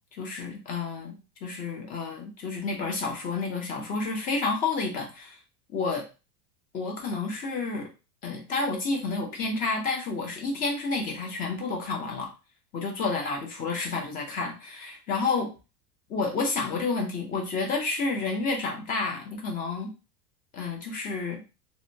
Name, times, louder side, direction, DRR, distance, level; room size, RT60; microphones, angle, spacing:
voice 1, 0.1-5.4 5.7-6.1 6.7-7.9 8.2-12.3 12.7-15.5 16.1-19.9 20.5-21.4, left 3 dB, 20° left, 1 dB, 0.5 m, -30 dB
2.7 x 2.2 x 2.6 m, 0.30 s
supercardioid pair, 145°, 45 cm